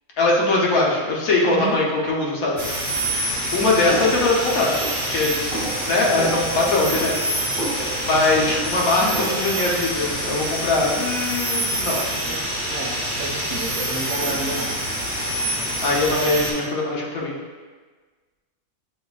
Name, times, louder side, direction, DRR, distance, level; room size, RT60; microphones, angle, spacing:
voice 1, 0.2-2.6 3.5-4.8 5.1-5.3 5.8-7.2 8.0-12.0 14.3-14.4 15.8-17.3, left 2 dB, 85° left, -3 dB, 1.2 m, -21 dB
voice 2, 1.4-1.8 12.1-14.8, right 2 dB, 70° right, -1 dB, 1.0 m, -31 dB
sound 1, 2.6-16.5, right 1 dB, 10° right, 1.3 m, -26 dB
sound 2, 3.9-9.7, right 1 dB, 40° right, 1.0 m, -32 dB
6.4 x 2.6 x 2.3 m, 1.4 s
omnidirectional pair, 1.4 m